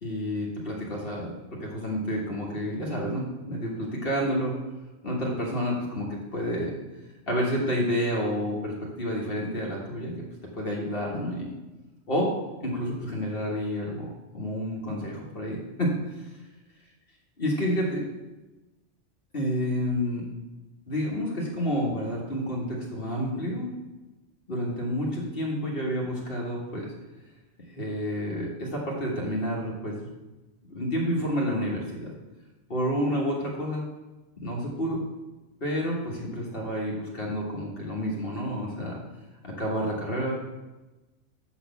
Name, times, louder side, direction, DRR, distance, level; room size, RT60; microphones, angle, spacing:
voice 1, 0.0-4.5 5.0-6.7 7.3-10.1 10.5-11.5 12.1-12.3 12.6-15.9 17.4-18.0 19.3-20.3 20.9-23.7 24.5-26.9 27.7-30.1 30.6-32.1 32.7-33.8 34.4-35.0 35.6-39.0 39.4-40.3, equal, 50° left, -3 dB, 1.6 m, -29 dB
7.2 x 4.2 x 6.8 m, 1.1 s
omnidirectional pair, 1.2 m